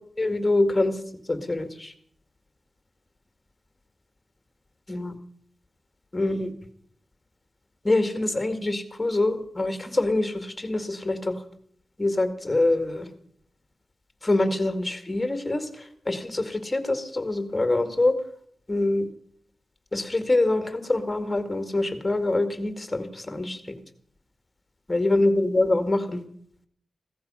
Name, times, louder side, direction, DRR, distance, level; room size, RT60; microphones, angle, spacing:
voice 1, 0.2-1.0 1.3-1.9 4.9-5.1 6.1-6.5 7.8-11.4 12.0-13.1 14.2-18.1 18.7-19.0 19.9-23.8 24.9-26.2, left 2 dB, 20° left, 8 dB, 2.2 m, -25 dB
16.5 x 14.0 x 5.7 m, 0.62 s
wide cardioid pair, 115°, 0 cm